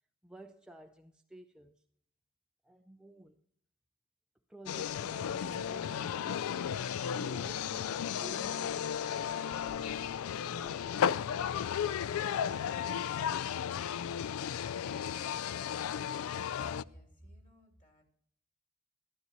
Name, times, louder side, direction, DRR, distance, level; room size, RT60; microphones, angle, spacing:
voice 1, 0.2-1.8 2.6-3.4 4.5-11.1 11.5-13.0, right 1 dB, 5° right, 0.4 m, -53 dB
sound 1, 4.7-16.8, left 8 dB, 70° left, 0.3 m, -34 dB
voice 2, 16.5-18.0, equal, 35° left, 2.8 m, -54 dB
14.0 x 12.5 x 2.9 m
head